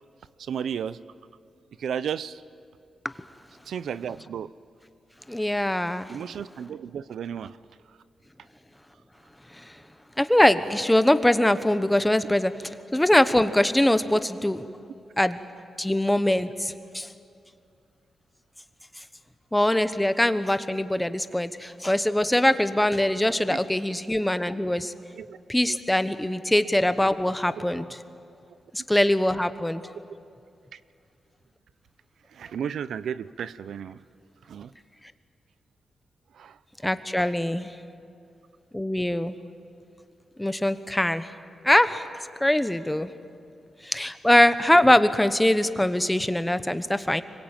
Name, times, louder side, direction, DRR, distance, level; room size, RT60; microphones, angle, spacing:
voice 1, 0.4-1.0 1.8-2.4 3.7-4.5 6.1-7.6 23.5-23.6 25.1-25.4 25.7-25.8 27.6-27.7 30.7-30.8 32.3-34.0 34.5-34.7 36.4-36.6 37.2-37.3, right 8 dB, 85° right, 16 dB, 0.5 m, -33 dB
voice 2, 5.3-6.2 9.5-9.7 10.2-14.7 15.2-15.4 15.8-17.1 19.5-24.9 25.5-27.9 28.7-29.8 36.8-37.7 38.7-39.3 40.4-41.3 41.6-42.1 42.4-43.1 43.8-47.2, left 1 dB, 10° left, 12 dB, 1.1 m, -22 dB
24.5 x 22.0 x 9.0 m, 2.5 s
cardioid pair, 90°, 0 cm